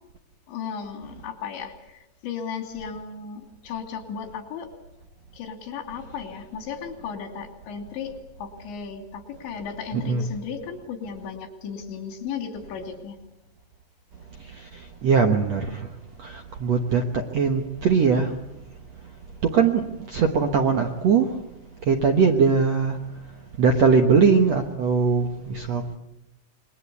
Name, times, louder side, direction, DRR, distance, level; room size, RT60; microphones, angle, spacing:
voice 1, 0.5-4.7 5.3-8.1 8.4-13.2, left 6 dB, 85° left, 6 dB, 5.1 m, -35 dB
voice 2, 15.0-15.8 16.2-18.3 19.4-21.3 21.9-23.0 23.6-26.0, right 5 dB, 75° right, 5 dB, 1.5 m, -21 dB
26.5 x 22.0 x 8.4 m, 0.90 s
omnidirectional pair, 5.0 m